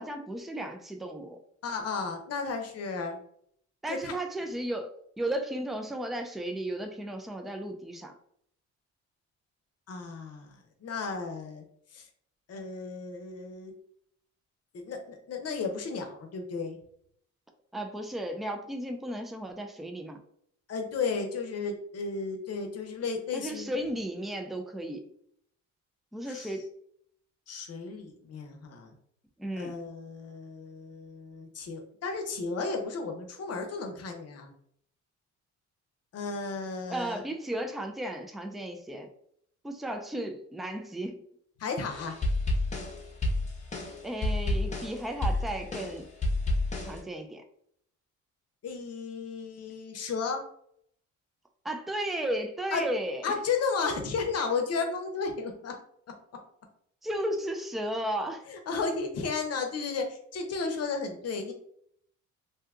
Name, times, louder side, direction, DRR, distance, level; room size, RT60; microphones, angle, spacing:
voice 1, 0.0-1.4 3.8-4.9 5.2-8.1 17.7-20.2 23.3-25.1 26.1-26.7 29.4-29.7 36.9-39.1 39.6-41.2 44.0-46.1 46.8-47.4 51.6-53.3 57.0-58.4 58.9-59.0, right 1 dB, ahead, 5 dB, 0.4 m, -34 dB
voice 2, 1.6-3.2 3.9-4.1 9.9-11.6 11.9-12.1 12.5-13.7 14.7-16.8 20.7-23.8 26.3-26.5 27.5-28.9 29.6-34.5 36.1-37.2 41.6-42.1 48.6-50.4 52.7-52.9 53.2-55.7 58.5-61.5, left 4 dB, 55° left, 4 dB, 0.8 m, -33 dB
sound 1, 41.9-47.0, left 1 dB, 25° left, 0.9 m, -30 dB
2.7 x 2.2 x 3.6 m, 0.67 s
cardioid pair, 90°, 30 cm